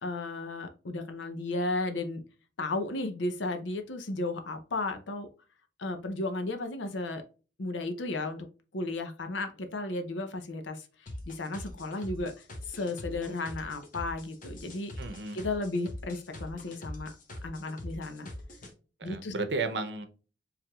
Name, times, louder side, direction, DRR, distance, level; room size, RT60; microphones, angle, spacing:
voice 1, 0.0-2.2 2.6-5.3 5.8-7.2 7.6-8.5 8.7-10.9 11.3-12.3 12.7-14.9 15.3-17.1 17.4-18.3 19.0-19.3, left 2 dB, 90° left, 7 dB, 0.7 m, -34 dB
sound 1, 11.1-18.7, left 1 dB, 45° left, 1.0 m, -43 dB
voice 2, 15.0-15.4 19.0-20.1, right 3 dB, 70° right, 8 dB, 0.8 m, -33 dB
4.6 x 3.3 x 2.3 m, 0.35 s
head